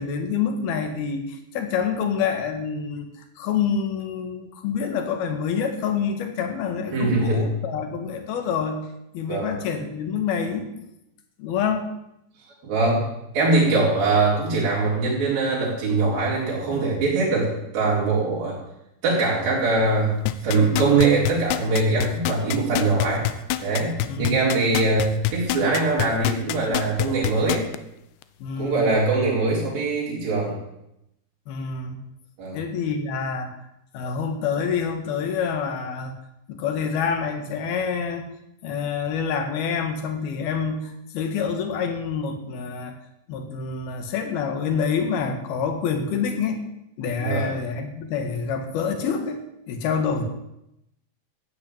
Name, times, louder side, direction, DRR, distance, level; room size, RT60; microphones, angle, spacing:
voice 1, 0.0-3.1 3.4-8.8 9.1-10.7 11.4-11.9 24.1-24.5 28.4-28.9 31.5-32.0 32.5-33.5 33.9-36.1 36.5-38.3 38.6-43.0 43.3-46.6 47.0-50.2, left 6 dB, 65° left, 6 dB, 3.6 m, -27 dB
voice 2, 6.9-7.4 9.3-9.5 12.6-13.1 13.3-18.6 19.0-20.1 20.4-23.3 23.6-27.6 28.6-30.5 32.4-32.6 47.2-47.5, right 3 dB, 55° right, -6 dB, 5.9 m, -22 dB
sound 1, 20.3-27.8 28.2-28.3, left 14 dB, 85° left, 2.9 m, -25 dB
15.0 x 9.7 x 8.7 m, 0.83 s
omnidirectional pair, 4.9 m